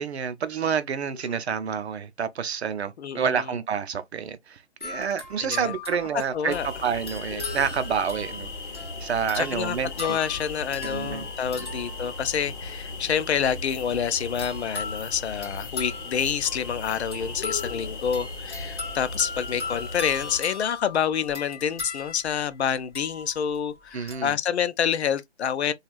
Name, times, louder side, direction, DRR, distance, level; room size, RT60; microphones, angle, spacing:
voice 1, 0.0-8.5 9.0-10.2 10.8-11.2 11.6-11.7 23.9-24.4, right 7 dB, 65° right, 0.6 m, -28 dB
voice 2, 3.0-3.5 5.4-5.7 6.3-6.7 9.4-25.7, left 8 dB, 70° left, 0.5 m, -28 dB
sound 1, 4.8-12.7 14.4-23.6 24.1-24.3, left 4 dB, 10° left, 1.0 m, -39 dB
sound 2, 6.5-20.4, left 3 dB, 45° left, 1.1 m, -37 dB
3.2 x 2.3 x 2.4 m
figure-of-eight pair, 150°, 34 cm